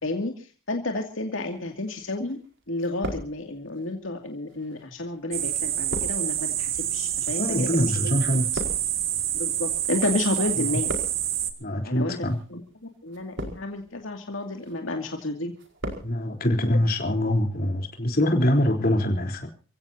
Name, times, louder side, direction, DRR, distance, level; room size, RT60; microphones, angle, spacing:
voice 1, 0.0-2.4 2.7-8.1 9.3-11.0 11.8-12.6 13.0-15.5, left 2 dB, 80° left, 2.4 m, -31 dB
sound 1, 1.9-2.5 2.7-3.8 4.5-10.1 10.4-11.4 12.1-12.4 13.1-13.9 14.3-14.8 15.2-16.1 16.4-16.5, equal, 65° right, 4.8 m, -38 dB
sound 2, 5.3-11.5, right 11 dB, 90° right, 2.2 m, -27 dB
voice 2, 7.4-8.6 10.7-10.8 11.6-12.4 16.0-19.5, left 1 dB, 50° left, 3.7 m, -24 dB
28.5 x 16.5 x 2.8 m
head